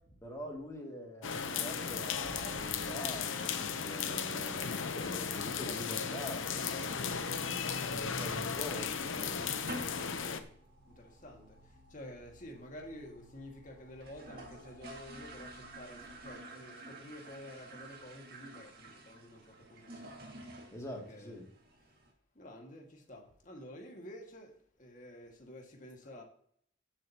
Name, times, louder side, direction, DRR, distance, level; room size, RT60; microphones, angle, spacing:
voice 1, 0.2-9.4 20.7-21.5, equal, 15° left, 2.5 m, -45 dB
sound 1, 1.2-10.4, left 6 dB, 85° left, 0.8 m, -36 dB
voice 2, 2.3-2.8 7.7-7.9 9.9-10.5 10.9-20.3 20.9-21.4 22.4-26.2, left 1 dB, 40° left, 2.0 m, -50 dB
sound 2, 7.8-16.3, equal, 85° right, 2.2 m, -60 dB
sound 3, 9.7-10.1 10.4-10.5 10.8-10.9 11.1-11.6 11.9-12.0 12.2-12.3 12.5-12.6 13.2-13.3 13.5-13.6 13.9-22.1, right 1 dB, 50° right, 2.1 m, -49 dB
15.5 x 7.6 x 2.9 m
head